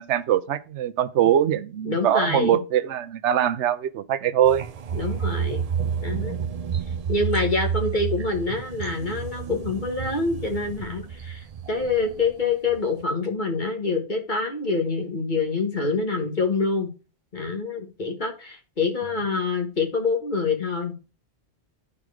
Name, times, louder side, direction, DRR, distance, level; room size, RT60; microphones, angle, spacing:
voice 1, 0.0-4.6, right 10 dB, 85° right, 0.9 m, -22 dB
voice 2, 1.9-2.6 4.9-5.7 6.0-6.4 7.1-16.9 17.3-20.9, left 4 dB, 45° left, 1.8 m, -26 dB
sound 1, 4.5-12.3 12.7-12.9, right 7 dB, 50° right, 0.5 m, -30 dB
9.9 x 4.7 x 4.8 m
omnidirectional pair, 1.2 m